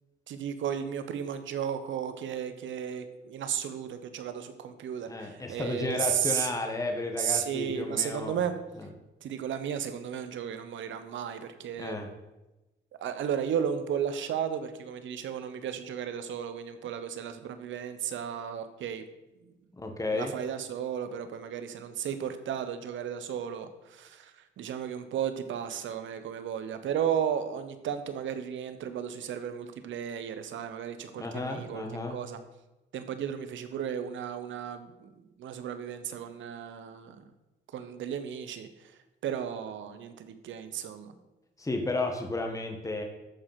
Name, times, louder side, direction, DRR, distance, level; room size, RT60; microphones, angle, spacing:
voice 1, 0.3-6.5 7.2-8.6 9.2-12.0 13.0-19.0 20.1-32.4 32.9-35.1 35.4-37.3 37.7-38.9 39.2-41.1, right 8 dB, 75° right, 10 dB, 1.2 m, -34 dB
voice 2, 5.1-8.4 11.8-12.1 19.8-20.3 31.2-32.2 41.6-43.0, left 2 dB, 15° left, 3 dB, 1.6 m, -33 dB
13.5 x 4.9 x 5.9 m, 1.0 s
cardioid pair, 90°, 20 cm